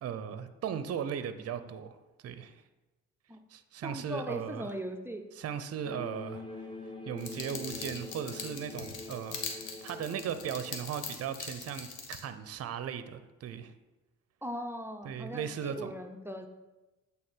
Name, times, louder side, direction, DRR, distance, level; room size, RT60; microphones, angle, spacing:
voice 1, 0.0-2.0 2.2-2.6 3.5-4.8 5.3-6.4 7.1-13.7 15.0-15.9, right 8 dB, 50° right, 12 dB, 0.6 m, -37 dB
voice 2, 3.8-5.2 14.4-16.5, equal, 10° right, 5 dB, 0.6 m, -39 dB
sound 1, 5.8-10.9, left 2 dB, 15° left, 1.1 m, -45 dB
sound 2, 7.2-12.2, left 5 dB, 75° left, 1.1 m, -42 dB
8.3 x 3.5 x 4.4 m, 1.1 s
supercardioid pair, 70°, 31 cm